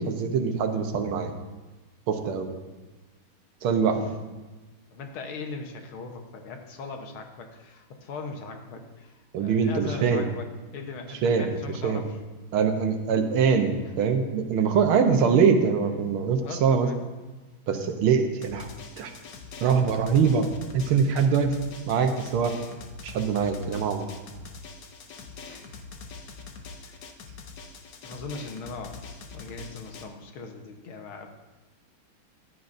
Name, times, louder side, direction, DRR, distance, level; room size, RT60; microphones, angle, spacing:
voice 1, 0.0-1.3 2.1-2.5 3.6-4.1 9.3-10.2 11.2-11.5 11.8-12.0 12.5-16.9 17.7-18.7 19.0-19.1 19.6-20.5 20.7-21.5 21.9-22.5 23.0-24.1, right 6 dB, 90° right, 6 dB, 1.8 m, -23 dB
voice 2, 4.9-10.5 10.7-12.2 16.4-17.2 25.5-25.6 26.8-27.0 28.0-29.0 29.3-31.3, left 4 dB, 80° left, 4 dB, 2.0 m, -39 dB
Drum, 18.4-30.0, left 4 dB, 65° left, 1.5 m, -44 dB
15.5 x 11.0 x 2.6 m, 1.2 s
omnidirectional pair, 2.2 m